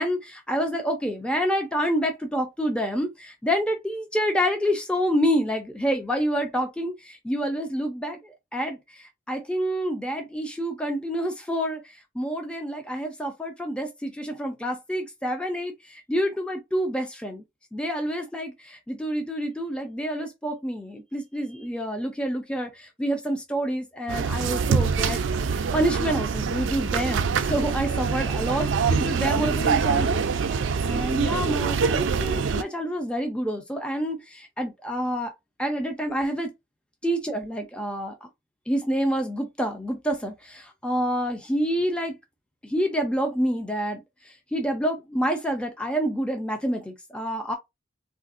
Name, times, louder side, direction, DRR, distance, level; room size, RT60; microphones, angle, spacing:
voice 1, 0.0-8.2 8.5-8.8 9.3-11.8 12.1-17.4 17.7-25.2 25.7-30.2 30.8-35.3 35.6-36.5 37.0-38.1 38.7-42.1 42.6-44.0 44.5-47.6, equal, 5° left, 0.5 m, -27 dB
sound 1, 24.1-32.6, right 5 dB, 75° right, 0.4 m, -25 dB
3.5 x 2.5 x 2.5 m
head